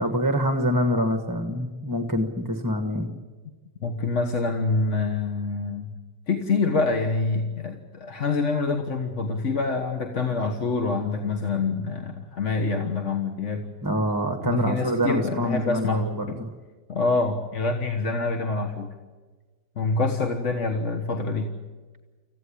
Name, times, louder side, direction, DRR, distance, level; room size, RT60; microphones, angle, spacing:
voice 1, 0.0-3.1 13.8-16.5, equal, 15° right, 6 dB, 1.3 m, -25 dB
voice 2, 3.8-5.9 6.3-13.7 14.4-16.4 16.9-18.9 19.8-21.5, left 3 dB, 45° left, 4 dB, 1.7 m, -26 dB
26.5 x 15.5 x 10.0 m, 1.3 s
omnidirectional pair, 1.8 m